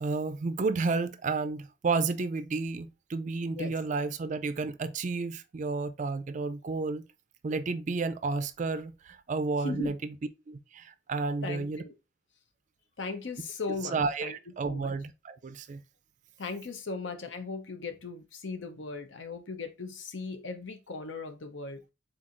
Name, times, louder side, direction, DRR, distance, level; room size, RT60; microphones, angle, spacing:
voice 1, 0.0-7.1 7.4-10.2 10.5-11.8 13.7-15.8, right 4 dB, 40° right, 0.4 m, -31 dB
voice 2, 9.6-9.9 11.4-11.9 13.0-14.4 14.6-14.9 16.4-21.8, left 3 dB, 70° left, 0.7 m, -38 dB
4.3 x 3.8 x 2.5 m
head